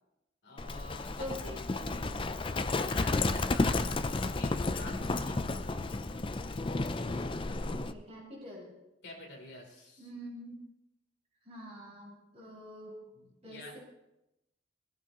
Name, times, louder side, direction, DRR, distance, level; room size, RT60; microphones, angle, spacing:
voice 1, 0.4-1.3 1.7-2.1 2.5-6.0 9.0-10.1 13.1-13.8, left 2 dB, 65° left, 0 dB, 3.4 m, -48 dB
Livestock farm animals working animals, 0.6-7.9, left 2 dB, 25° left, 0.5 m, -32 dB
voice 2, 1.2-2.1 5.1-5.3 7.5-8.8 10.0-10.6 11.4-12.9 13.4-13.8, equal, 35° right, -5 dB, 5.8 m, -45 dB
18.0 x 14.5 x 3.0 m, 0.90 s
head